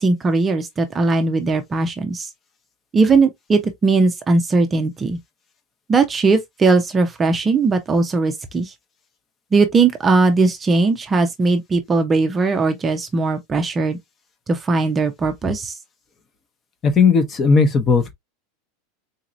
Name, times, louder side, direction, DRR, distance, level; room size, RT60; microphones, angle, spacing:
voice 1, 0.0-2.3 2.9-5.2 5.9-8.7 9.5-14.0 14.5-15.8, right 3 dB, 15° right, 0.6 m, -19 dB
voice 2, 16.8-18.1, left 5 dB, 25° left, 0.8 m, -16 dB
3.9 x 2.9 x 2.5 m
supercardioid pair, 150°, 0 cm